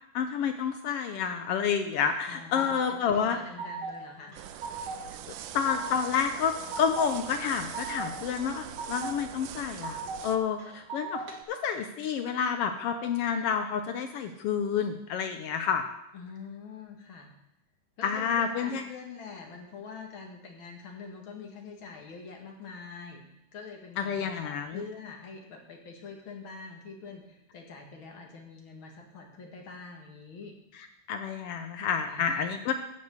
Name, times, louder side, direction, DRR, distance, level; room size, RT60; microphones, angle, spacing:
voice 1, 0.1-3.4 5.3-11.2 11.5-15.8 18.0-18.8 24.0-24.8 31.1-32.7, left 7 dB, 85° left, 7 dB, 1.3 m, -29 dB
sound 1, 1.9-2.9 3.3-4.0 4.3-5.0 5.4-6.1 6.4-7.1 7.5-8.1 8.5-9.2 9.5-10.2 10.6-11.4, right 5 dB, 55° right, 2.3 m, -38 dB
voice 2, 2.3-4.7 7.9-8.1 16.1-17.3 18.0-23.2 23.5-30.6 32.1-32.7, left 4 dB, 45° left, 2 dB, 2.1 m, -45 dB
sound 2, 4.4-10.4, right 10 dB, 85° right, 2.1 m, -42 dB
12.0 x 5.4 x 8.1 m, 0.82 s
omnidirectional pair, 3.5 m